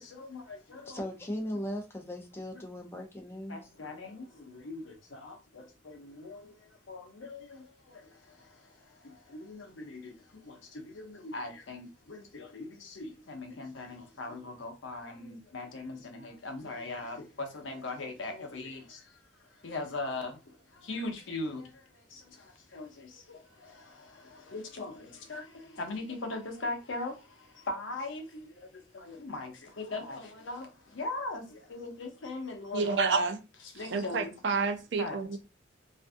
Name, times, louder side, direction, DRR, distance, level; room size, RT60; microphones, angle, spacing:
voice 1, 0.0-1.0 2.5-2.6 3.5-33.0 33.7-34.3 35.0-35.4, left 2 dB, 75° left, 0.6 m, -41 dB
voice 2, 0.8-3.6, equal, 10° left, 0.5 m, -38 dB
voice 3, 32.7-33.4 33.9-35.4, right 4 dB, 60° right, 0.4 m, -29 dB
2.5 x 2.3 x 2.5 m
head